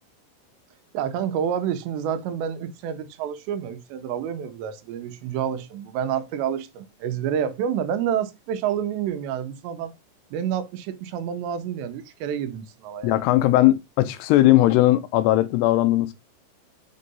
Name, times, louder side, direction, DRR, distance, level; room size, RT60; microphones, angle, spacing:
voice 1, 0.9-9.9 10.3-13.3, right 9 dB, 85° right, 3.0 m, -28 dB
voice 2, 13.0-16.1, left 15 dB, 85° left, 2.6 m, -18 dB
6.6 x 3.7 x 5.3 m
omnidirectional pair, 4.9 m